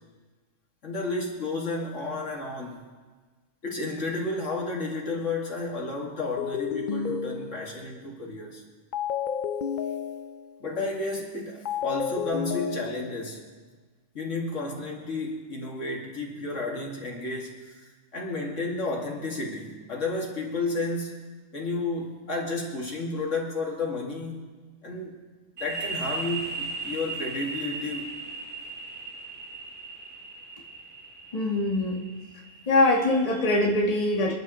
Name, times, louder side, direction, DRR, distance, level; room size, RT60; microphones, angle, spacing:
voice 1, 0.8-2.8 3.6-8.6 10.6-13.5 14.1-21.1 21.5-24.4 24.8-25.2 25.6-28.0, left 2 dB, 55° left, -1 dB, 2.5 m, -32 dB
sound 1, 6.2-7.9 8.9-10.6 11.6-13.3, left 7 dB, 80° left, 0.4 m, -31 dB
sound 2, 25.6-33.0, right 3 dB, 70° right, 2.7 m, -37 dB
voice 2, 31.3-32.0 32.7-34.3, left 2 dB, 25° left, -2 dB, 1.4 m, -23 dB
27.0 x 11.0 x 3.1 m, 1.4 s
omnidirectional pair, 1.5 m